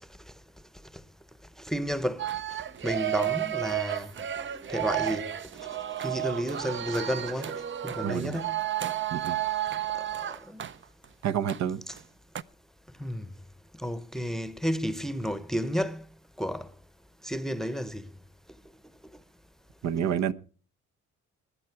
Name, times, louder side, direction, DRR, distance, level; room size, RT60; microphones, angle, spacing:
voice 1, 1.6-2.3 2.8-4.1 4.7-5.3 6.0-8.6 10.5-10.6 13.0-13.3 13.8-16.0 16.4-16.7 17.2-18.1, equal, ahead, 0.8 m, -31 dB
sound 1, 2.2-11.6 11.9-12.0 12.3-12.4, right 12 dB, 40° right, 0.6 m, -32 dB
voice 2, 8.0-8.4 9.1-9.4 11.2-11.8 19.8-20.3, right 9 dB, 65° right, 1.0 m, -28 dB
20.0 x 8.8 x 4.7 m
cardioid pair, 90°, 30 cm